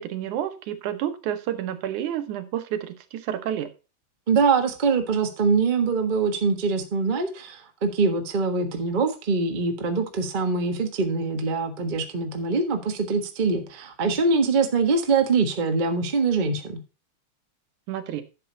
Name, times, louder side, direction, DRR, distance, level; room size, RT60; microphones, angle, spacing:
voice 1, 0.0-3.7 17.9-18.2, right 10 dB, 85° right, 10 dB, 2.5 m, -30 dB
voice 2, 4.3-16.8, right 4 dB, 50° right, 5 dB, 0.5 m, -23 dB
11.5 x 6.8 x 4.0 m, 0.31 s
omnidirectional pair, 3.4 m